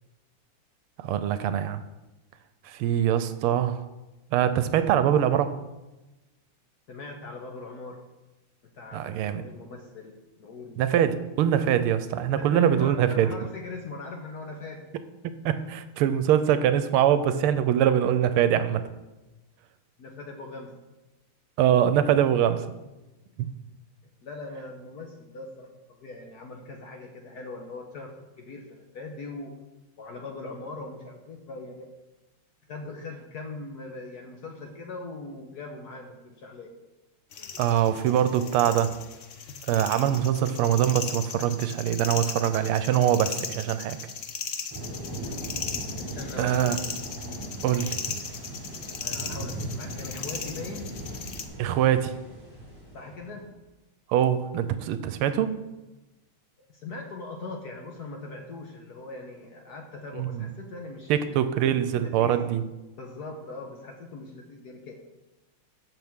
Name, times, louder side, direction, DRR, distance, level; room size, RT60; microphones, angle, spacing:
voice 1, 1.0-1.8 2.6-3.8 4.3-5.5 8.9-9.4 10.8-13.3 15.4-18.9 21.6-22.7 23.4-23.5 37.6-39.0 39.6-44.0 46.4-46.8 47.6-48.2 51.6-52.1 54.1-55.6 60.1-60.5 61.1-62.6, right 10 dB, 85° right, 12 dB, 1.5 m, -23 dB
voice 2, 6.9-8.0 8.7-10.8 12.3-14.9 20.0-20.8 24.0-29.5 30.0-31.9 32.7-36.7 46.0-46.7 49.0-50.9 52.9-53.5 56.7-61.4 62.0-62.4 62.9-64.9, left 3 dB, 55° left, 2 dB, 1.3 m, -40 dB
sound 1, 37.3-51.4, left 6 dB, 80° left, 0.6 m, -37 dB
sound 2, 44.7-53.5, right 1 dB, 10° right, 1.9 m, -39 dB
14.0 x 5.9 x 3.6 m, 1.1 s
omnidirectional pair, 2.4 m